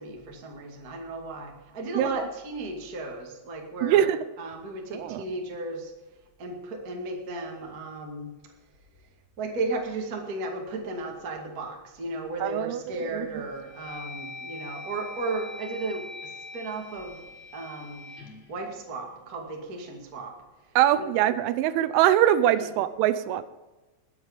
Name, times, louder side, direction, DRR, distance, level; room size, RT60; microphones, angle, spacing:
voice 1, 0.0-4.1 4.4-5.9 6.4-8.3 9.4-17.2 17.5-18.1 18.5-20.3 21.0-21.1 22.5-22.6, right 2 dB, 40° right, 1 dB, 1.2 m, -35 dB
voice 2, 2.0-2.3 3.8-4.2 4.9-5.3 12.4-12.8 13.1-13.3 20.8-23.4, right 12 dB, 85° right, 13 dB, 3.1 m, -23 dB
sound 1, 12.5-12.9 13.4-19.6, left 2 dB, 55° left, 3.7 m, -43 dB
20.5 x 8.3 x 5.2 m, 1.1 s
omnidirectional pair, 5.6 m